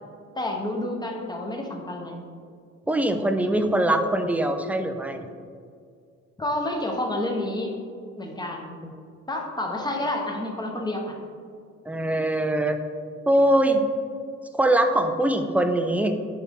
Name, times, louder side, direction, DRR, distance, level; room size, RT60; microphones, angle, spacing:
voice 1, 0.3-2.2 6.4-7.7 8.2-8.8 9.3-11.2, left 1 dB, 15° left, 1 dB, 1.1 m, -29 dB
voice 2, 2.9-5.2 11.9-12.8 13.3-13.8 14.5-16.1, right 1 dB, 5° right, 6 dB, 0.5 m, -22 dB
10.0 x 3.5 x 3.6 m, 2.2 s
cardioid pair, 90°, 30 cm